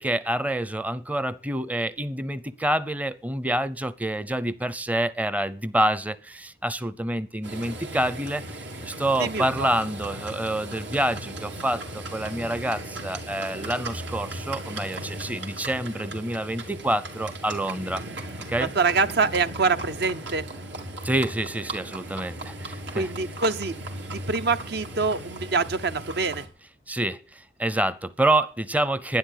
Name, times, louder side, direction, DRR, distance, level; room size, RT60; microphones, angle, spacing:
voice 1, 0.0-18.0 18.5-18.7 21.0-23.1 26.9-29.2, right 1 dB, 10° right, 0.6 m, -27 dB
Livestock farm animals working animals, 7.4-26.5, right 1 dB, 90° right, 3.2 m, -37 dB
voice 2, 9.2-9.7 18.7-20.4 22.9-23.7 24.1-26.4, right 4 dB, 65° right, 0.8 m, -25 dB
11.5 x 10.0 x 8.4 m
head